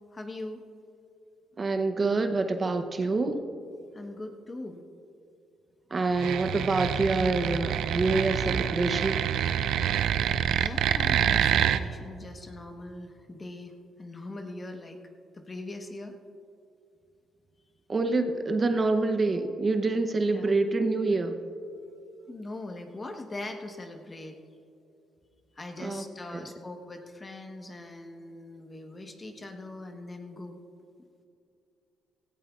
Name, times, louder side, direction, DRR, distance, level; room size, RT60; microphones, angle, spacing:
voice 1, 0.1-0.6 3.0-3.3 3.9-4.8 10.5-15.0 15.3-16.2 20.3-20.5 22.3-24.4 25.6-30.6, left 2 dB, 30° left, 4 dB, 1.2 m, -41 dB
voice 2, 1.6-3.4 5.9-9.2 17.9-21.4 25.8-26.0 26.3-26.4, right 3 dB, 35° right, 7 dB, 0.7 m, -26 dB
sound 1, 6.1-11.8, right 9 dB, 80° right, 0.4 m, -26 dB
17.0 x 15.0 x 2.4 m, 2.5 s
cardioid pair, 90°, 0 cm